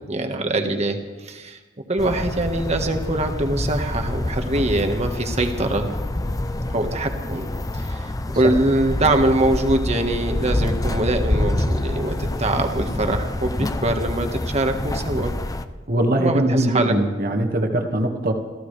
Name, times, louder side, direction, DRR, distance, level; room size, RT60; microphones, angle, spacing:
voice 1, 0.1-1.6 1.9-5.9 6.7-7.5 7.7-15.3 16.2-16.9, right 2 dB, 35° right, 5 dB, 1.6 m, -23 dB
sound 1, 2.0-15.6, left 1 dB, 20° left, 0.6 m, -26 dB
voice 2, 15.9-18.3, right 1 dB, 55° right, 3 dB, 1.9 m, -21 dB
27.5 x 14.5 x 3.4 m, 1.3 s
head